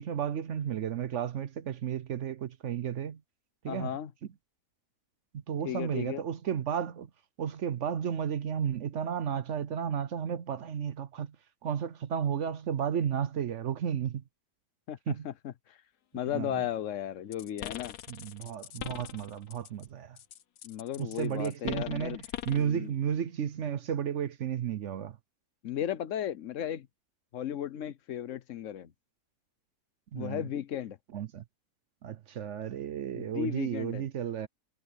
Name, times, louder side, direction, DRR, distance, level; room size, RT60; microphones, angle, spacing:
voice 1, 0.0-3.2 3.6-3.9 5.3-7.1 7.4-11.4 11.6-14.2 15.1-15.3 16.3-16.7 18.1-20.2 21.0-22.2 22.5-25.2 30.1-30.5 31.1-31.4 32.0-34.5, right 8 dB, 60° right, 0.9 m, -33 dB
voice 2, 3.7-4.1 5.6-6.2 14.9-15.8 16.1-17.9 20.6-22.2 22.5-22.9 25.6-26.9 27.3-28.9 30.1-31.0 33.1-34.0, left 10 dB, 60° left, 1.1 m, -35 dB
sound 1, 17.3-19.9 20.2-22.7, left 11 dB, 85° left, 1.4 m, -41 dB
omnidirectional pair, 1.6 m